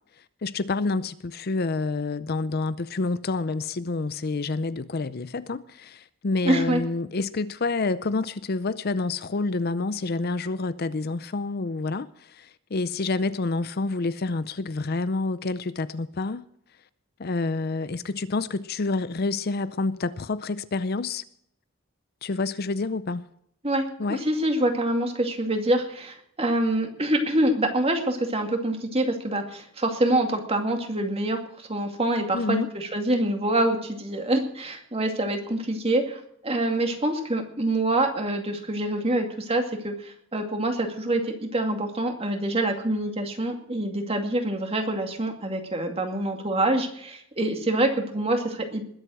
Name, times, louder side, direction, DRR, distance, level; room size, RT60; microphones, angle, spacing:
voice 1, 0.4-16.4 17.2-21.2 22.2-23.3 24.0-24.2 32.3-32.7, left 3 dB, 50° left, 0.5 m, -28 dB
voice 2, 6.4-6.8 23.6-48.8, right 1 dB, 30° right, 2.3 m, -26 dB
20.5 x 7.9 x 6.3 m
head